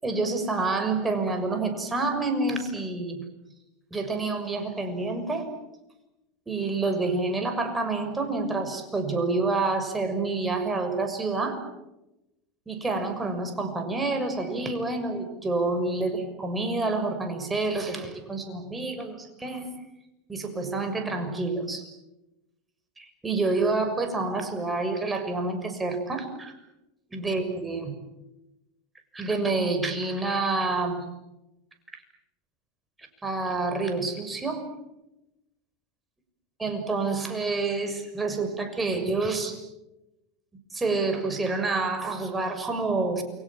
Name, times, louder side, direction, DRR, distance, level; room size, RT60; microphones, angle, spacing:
voice 1, 0.0-3.2 3.9-5.4 6.5-11.6 12.7-19.7 20.3-21.9 23.0-26.5 27.1-27.9 29.1-31.0 33.2-34.6 36.6-39.6 40.7-43.2, right 3 dB, 15° right, 6 dB, 6.6 m, -28 dB
29.0 x 24.5 x 7.5 m, 0.95 s
hypercardioid pair, 85°, 0 cm